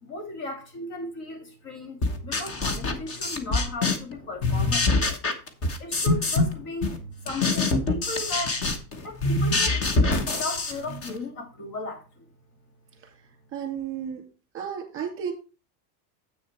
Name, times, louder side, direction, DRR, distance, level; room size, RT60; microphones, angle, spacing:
voice 1, 0.0-5.2 5.8-8.6 9.0-12.3, left 2 dB, 55° left, 2.9 m, -36 dB
sound 1, 2.0-4.1 4.4-6.5 6.8-11.2, left 3 dB, 30° left, 1.2 m, -25 dB
voice 2, 13.5-14.2 14.5-15.3, right 8 dB, 30° right, 2.3 m, -32 dB
8.2 x 6.4 x 4.4 m
supercardioid pair, 150°, 45 cm